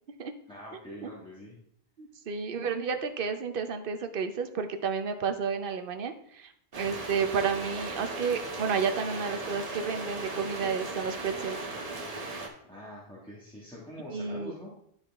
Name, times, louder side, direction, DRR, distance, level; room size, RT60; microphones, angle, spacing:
voice 1, 0.5-1.5 6.8-6.9 12.7-14.7, left 1 dB, 5° left, -6 dB, 1.4 m, -45 dB
voice 2, 2.0-11.6 14.1-14.5, right 6 dB, 60° right, 8 dB, 0.8 m, -31 dB
sound 1, 6.7-12.5, right 2 dB, 35° right, 1.1 m, -37 dB
11.5 x 4.1 x 3.4 m, 0.70 s
omnidirectional pair, 1.1 m